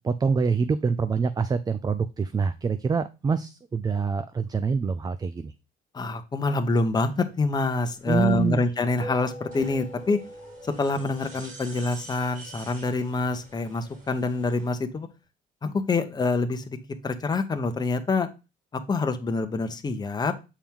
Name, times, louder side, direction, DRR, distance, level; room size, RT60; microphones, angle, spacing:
voice 1, 0.0-5.5 8.1-8.6, right 5 dB, 25° right, 12 dB, 0.4 m, -25 dB
voice 2, 5.9-10.2 10.6-15.1 15.6-16.8 17.0-18.3 18.7-20.3, left 3 dB, 25° left, 7 dB, 1.0 m, -26 dB
sound 1, 7.0-14.7, right 2 dB, 50° right, 2.9 m, -48 dB
sound 2, 9.0-13.7, equal, 70° right, 2.5 m, -44 dB
7.0 x 4.5 x 3.6 m, 0.28 s
cardioid pair, 110°, 17 cm